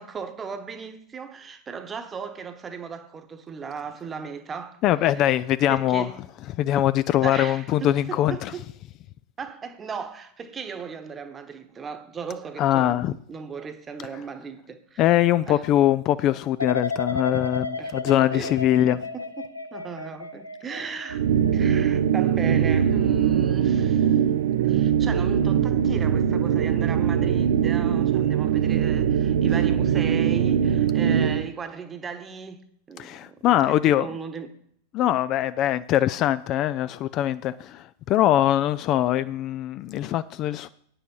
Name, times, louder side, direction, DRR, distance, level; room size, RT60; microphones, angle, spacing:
voice 1, 0.0-4.8 5.1-5.3 5.7-6.2 7.2-8.6 9.4-15.0 15.5-15.6 17.8-17.9 18.2-18.6 18.9-21.2 21.5-24.2 24.6-33.1 33.4-34.5, right 6 dB, 20° right, 1.0 m, -37 dB
voice 2, 4.8-6.1 6.6-8.5 12.6-13.1 15.0-19.0 33.0-34.1 34.9-40.7, left 12 dB, 35° left, 0.3 m, -22 dB
sound 1, 16.6-23.5 23.9-24.4, left 3 dB, 85° left, 0.6 m, -34 dB
sound 2, 21.1-31.5, right 8 dB, 55° right, 0.5 m, -21 dB
9.3 x 6.9 x 5.4 m
figure-of-eight pair, 90°, 0 cm